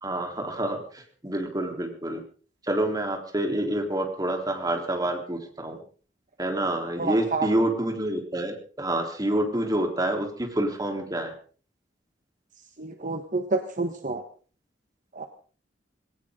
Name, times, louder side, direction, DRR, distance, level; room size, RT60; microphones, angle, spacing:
voice 1, 0.0-0.8 1.2-2.2 2.7-5.8 6.4-11.3, right 1 dB, 20° right, 2 dB, 3.9 m, -27 dB
voice 2, 7.0-7.5 12.8-14.2 15.1-15.3, right 3 dB, 45° right, 6 dB, 1.5 m, -29 dB
20.0 x 18.5 x 3.9 m, 0.42 s
head